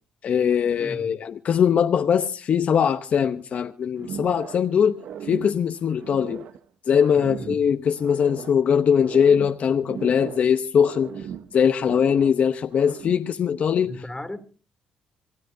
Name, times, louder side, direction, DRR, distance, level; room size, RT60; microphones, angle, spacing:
voice 1, 0.2-6.5 6.9-14.0, left 7 dB, 60° left, 0.8 m, -21 dB
voice 2, 0.8-1.1 7.2-7.6 13.9-14.4, left 2 dB, 15° left, 2.6 m, -36 dB
sound 1, 4.0-4.7 5.0-6.6 7.0-8.6 8.9-10.6 10.8-12.4 12.7-13.3, right 9 dB, 70° right, 0.9 m, -38 dB
26.5 x 14.0 x 2.7 m
supercardioid pair, 70°, 3 cm